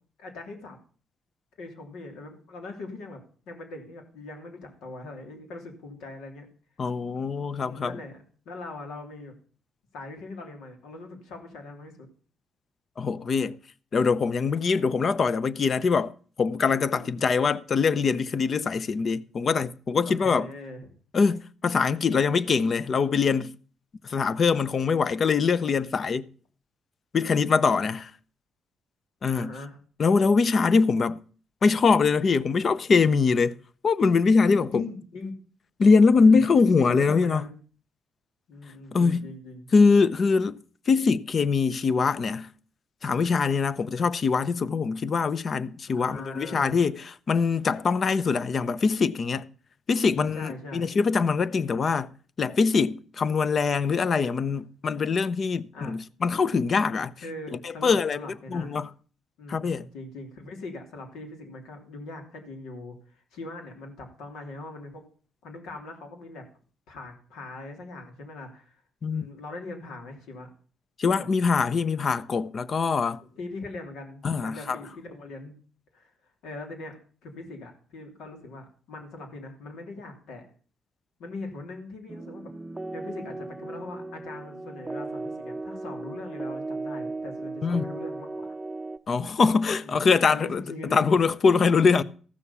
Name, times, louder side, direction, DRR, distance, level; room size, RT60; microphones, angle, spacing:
voice 1, 0.2-0.8 1.6-3.2 3.5-6.5 7.6-9.3 9.9-12.1 16.8-17.1 20.0-20.9 29.3-29.8 34.5-35.3 36.2-37.6 38.5-39.7 45.9-46.8 50.0-51.0 55.7-55.9 57.2-58.7 59.4-65.0 65.4-66.4 66.9-68.8 69.1-70.5 71.2-71.3 72.9-75.5 75.9-76.1 76.4-77.0 77.2-80.4 81.2-82.5 82.9-88.5 89.8-90.0 90.3-91.2, left 2 dB, 85° left, 3.1 m, -41 dB
voice 2, 6.8-8.0 13.0-13.6 13.9-16.1 16.4-20.5 21.1-23.5 24.0-26.3 27.1-28.1 29.2-29.5 30.0-31.2 31.6-33.6 33.8-34.8 35.8-37.4 38.9-39.3 39.7-40.6 40.9-42.5 43.0-49.5 49.9-52.1 52.4-57.1 57.6-58.2 58.5-58.9 59.5-59.9 69.0-69.2 71.0-73.2 74.2-74.8 87.6-87.9 89.1-90.6 90.9-92.0, left 5 dB, 45° left, 0.7 m, -23 dB
sound 1, 82.1-89.0, right 2 dB, 15° right, 0.6 m, -36 dB
14.5 x 6.5 x 7.0 m
cardioid pair, 90°, 0 cm